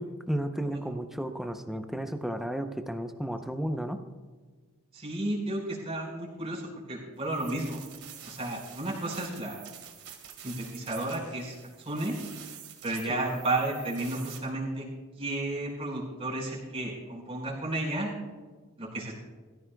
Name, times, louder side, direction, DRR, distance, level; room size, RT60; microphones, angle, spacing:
voice 1, 0.0-4.0 13.1-13.3, equal, ahead, 7 dB, 0.6 m, -33 dB
voice 2, 4.9-6.6 6.9-7.8 8.2-9.7 10.4-11.5 11.8-12.2 12.8-14.9 15.2-18.1 18.8-19.1, right 2 dB, 25° right, -5 dB, 4.5 m, -32 dB
sound 1, 7.2-14.4, right 9 dB, 90° right, 2.5 m, -47 dB
21.5 x 14.5 x 2.3 m, 1.4 s
head